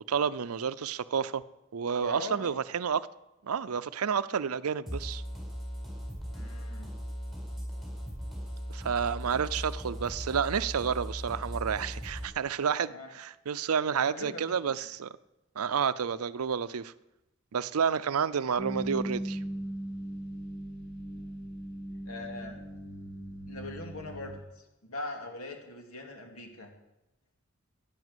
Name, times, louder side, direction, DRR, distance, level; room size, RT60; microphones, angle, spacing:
voice 1, 0.1-1.4 1.7-3.1 3.4-5.2 8.7-15.1 15.6-16.9 17.5-19.4, right 7 dB, 90° right, 0.5 m, -30 dB
voice 2, 2.0-2.5 6.3-6.9 9.2-9.3 12.9-13.1 14.1-14.4 14.8-14.9 21.2-21.3 22.0-22.6 23.5-26.7, left 2 dB, 80° left, 2.7 m, -42 dB
sound 1, 4.9-12.3, equal, ahead, 4.6 m, -38 dB
sound 2, 18.6-24.4, right 1 dB, 55° left, 6.3 m, -38 dB
12.5 x 10.0 x 8.0 m
head